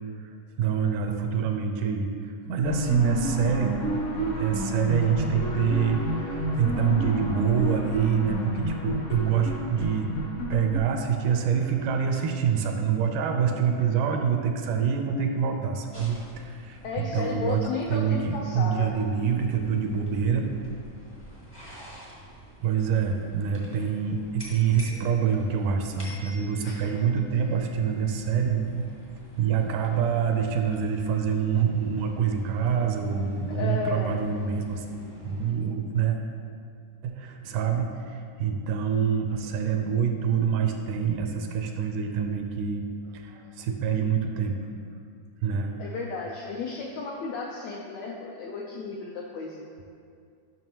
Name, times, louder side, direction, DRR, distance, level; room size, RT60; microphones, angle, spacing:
voice 1, 0.6-3.8 4.1-10.2 10.5-17.6 17.9-20.4 22.6-28.8 29.4-34.9 35.2-36.2 37.0-42.9 43.1-44.6 45.4-45.7, right 7 dB, 80° right, 4 dB, 2.0 m, -26 dB
sound 1, 2.6-11.5, equal, 70° left, 1.3 m, -30 dB
sound 2, 15.9-35.5, equal, 35° left, 0.4 m, -48 dB
voice 2, 16.8-18.9 26.6-26.9 33.5-34.1 45.8-49.6, left 4 dB, 85° left, -2 dB, 1.5 m, -33 dB
10.5 x 6.1 x 2.9 m, 2.3 s
omnidirectional pair, 3.8 m